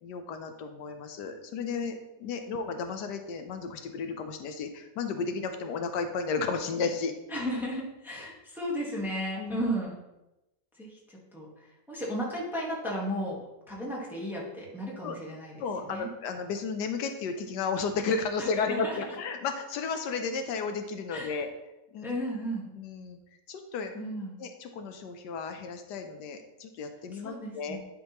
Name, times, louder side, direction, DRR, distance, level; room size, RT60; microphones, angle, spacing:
voice 1, 0.0-7.1 9.4-9.6 15.0-15.2 15.6-21.5 21.9-22.2 22.7-23.2 23.5-23.9 24.4-27.8, left 5 dB, 80° left, 6 dB, 1.2 m, -33 dB
voice 2, 7.3-10.0 10.8-16.1 18.4-19.0 21.1-21.4 22.0-22.7 23.9-24.4 27.1-27.8, equal, ahead, -4 dB, 1.2 m, -35 dB
10.0 x 3.8 x 2.9 m, 0.96 s
omnidirectional pair, 1.8 m